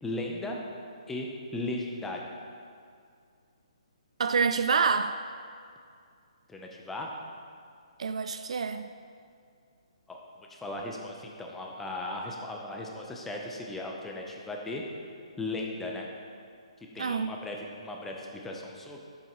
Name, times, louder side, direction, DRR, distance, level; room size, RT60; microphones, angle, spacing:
voice 1, 0.0-0.6 1.1-2.3 6.5-7.1 10.1-14.8 15.4-16.1 16.9-19.0, left 2 dB, 5° left, -1 dB, 0.7 m, -37 dB
voice 2, 4.2-5.2 8.0-8.9 17.0-17.3, right 5 dB, 70° right, 9 dB, 0.3 m, -27 dB
10.5 x 7.2 x 3.1 m, 2.3 s
hypercardioid pair, 160°, 3 cm